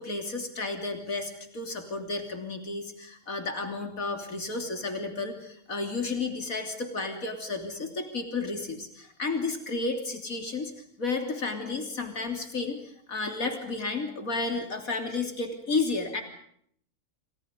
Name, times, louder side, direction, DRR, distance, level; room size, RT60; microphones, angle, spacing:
voice 1, 0.0-16.2, left 3 dB, 85° left, 5 dB, 3.6 m, -32 dB
29.5 x 25.5 x 5.3 m, 0.66 s
omnidirectional pair, 1.4 m